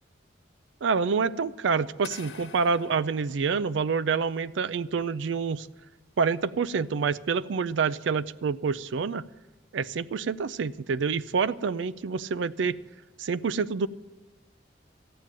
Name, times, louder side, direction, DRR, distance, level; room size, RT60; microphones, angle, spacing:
voice 1, 0.8-5.7 6.2-9.2 9.7-12.8 13.2-13.9, right 5 dB, 75° right, 16 dB, 0.4 m, -27 dB
sound 1, 2.0-4.1, left 6 dB, 60° left, 1.2 m, -47 dB
13.5 x 9.2 x 7.4 m, 1.2 s
head